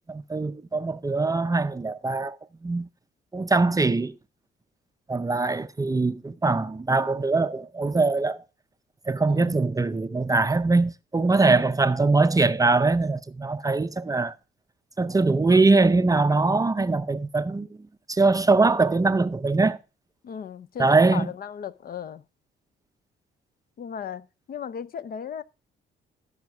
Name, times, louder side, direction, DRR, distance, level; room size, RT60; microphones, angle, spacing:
voice 1, 0.0-2.4 2.6-2.9 3.3-4.1 5.1-8.4 9.1-14.3 15.0-17.7 18.1-19.8 20.8-21.3, right 3 dB, 15° right, 0.5 m, -22 dB
voice 2, 9.3-9.6 20.2-22.2 23.8-25.4, left 7 dB, 50° left, 0.5 m, -36 dB
13.0 x 5.0 x 4.7 m
cardioid pair, 90°, 20 cm